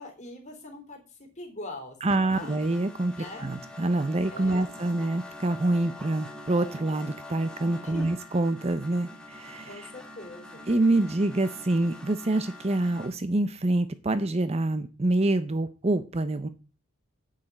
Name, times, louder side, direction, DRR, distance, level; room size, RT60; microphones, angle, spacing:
voice 1, 0.0-2.6 3.2-3.6 4.3-4.7 7.8-8.1 9.6-10.7, left 2 dB, 35° left, 3.8 m, -42 dB
sound 1, 2.0-13.1, left 1 dB, 5° left, 1.8 m, -45 dB
voice 2, 2.0-3.1 3.4-9.9 10.7-16.5, right 2 dB, 30° right, 0.7 m, -26 dB
8.9 x 6.7 x 8.6 m
head